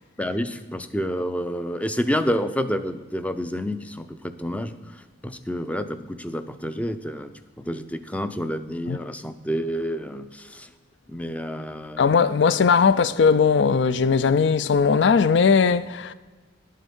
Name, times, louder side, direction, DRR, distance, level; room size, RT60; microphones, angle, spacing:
voice 1, 0.2-4.8 5.2-10.7 11.1-12.0, equal, 5° left, 0.5 m, -29 dB
voice 2, 12.0-16.1, left 5 dB, 60° left, 0.4 m, -19 dB
11.0 x 7.6 x 5.4 m
head